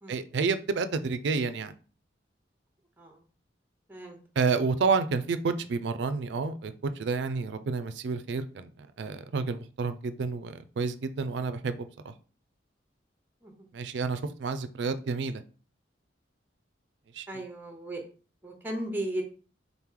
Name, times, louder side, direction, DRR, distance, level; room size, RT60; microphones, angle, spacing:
voice 1, 0.1-1.7 4.4-12.1 13.7-15.4 17.1-17.3, right 4 dB, 65° right, 11 dB, 0.4 m, -30 dB
voice 2, 17.3-18.0 18.4-19.2, right 1 dB, 10° right, 3 dB, 0.8 m, -36 dB
3.9 x 3.0 x 3.7 m, 0.39 s
head